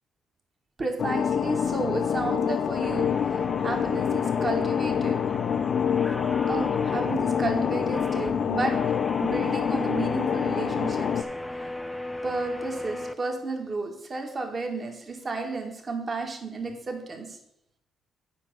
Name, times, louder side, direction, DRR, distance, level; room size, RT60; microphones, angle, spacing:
voice 1, 0.8-3.2 3.6-5.2 6.5-8.8 9.2-11.2 12.2-17.4, right 3 dB, 35° right, 3 dB, 2.0 m, -32 dB
sound 1, 1.0-11.2, left 8 dB, 60° left, 0.5 m, -26 dB
sound 2, 2.8-13.1, left 1 dB, 5° left, 0.7 m, -36 dB
9.0 x 5.2 x 6.9 m, 0.78 s
cardioid pair, 90°, 0 cm